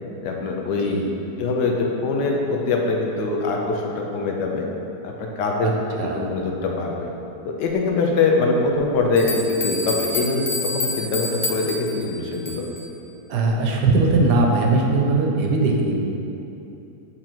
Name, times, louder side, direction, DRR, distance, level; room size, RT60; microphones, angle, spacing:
voice 1, 0.2-1.0 1.4-4.7 5.0-5.7 6.1-7.1 7.4-12.7, left 3 dB, 75° left, 0 dB, 1.3 m, -23 dB
voice 2, 6.0-6.3 13.3-15.9, right 3 dB, 70° right, 1 dB, 1.3 m, -20 dB
sound 1, 9.2-12.9, left 3 dB, 50° left, 0.8 m, -29 dB
7.7 x 3.8 x 4.5 m, 2.9 s
omnidirectional pair, 1.9 m